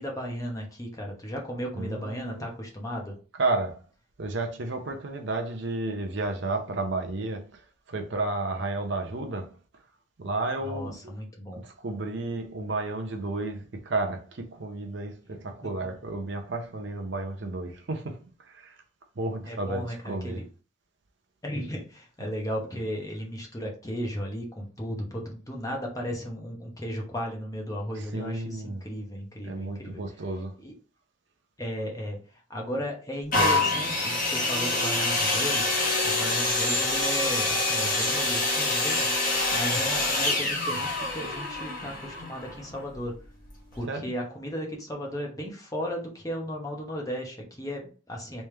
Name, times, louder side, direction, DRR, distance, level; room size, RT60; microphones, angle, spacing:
voice 1, 0.0-3.1 9.1-9.2 10.6-11.6 15.3-15.4 19.5-20.4 21.4-30.0 30.6-30.7 31.6-43.1 43.7-48.5, equal, 15° left, 0.9 m, -35 dB
voice 2, 1.7-2.5 3.4-3.8 4.2-7.6 7.9-9.5 10.2-11.1 11.6-18.8 19.2-20.4 28.0-28.8 29.5-30.5 43.9-44.1, right 2 dB, 60° right, 0.6 m, -32 dB
sound 1, 33.3-43.0 43.7-43.8, left 2 dB, 40° left, 1.3 m, -26 dB
3.3 x 3.2 x 3.2 m
head